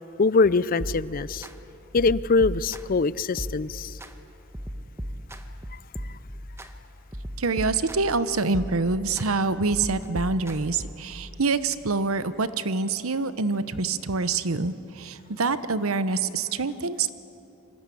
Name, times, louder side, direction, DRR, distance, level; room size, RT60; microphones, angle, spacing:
voice 1, 0.2-1.5 1.9-3.9, left 4 dB, 40° left, 18 dB, 0.5 m, -23 dB
sound 1, 0.8-1.5 2.0-3.0 3.4-4.1 4.5-6.7 7.1-8.2 8.5-9.3 9.7-11.1, equal, 10° right, 1.3 m, -37 dB
voice 2, 7.4-17.1, right 3 dB, 80° right, 13 dB, 1.0 m, -26 dB
26.5 x 24.0 x 8.6 m, 3.0 s
head